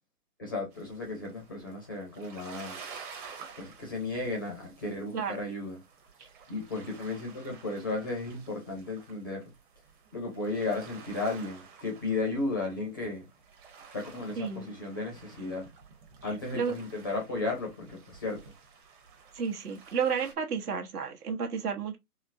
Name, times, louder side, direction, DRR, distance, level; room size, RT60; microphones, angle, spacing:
voice 1, 0.4-2.8 3.6-5.8 6.2-9.5 10.1-13.3 13.9-15.6 16.2-18.4, left 3 dB, 15° left, 0.4 m, -34 dB
sound 1, 0.7-20.3, right 5 dB, 35° right, 0.9 m, -51 dB
voice 2, 14.4-14.7 16.5-16.7 19.3-22.0, right 6 dB, 80° right, 1.2 m, -31 dB
4.2 x 2.0 x 2.5 m
hypercardioid pair, 140°, 46 cm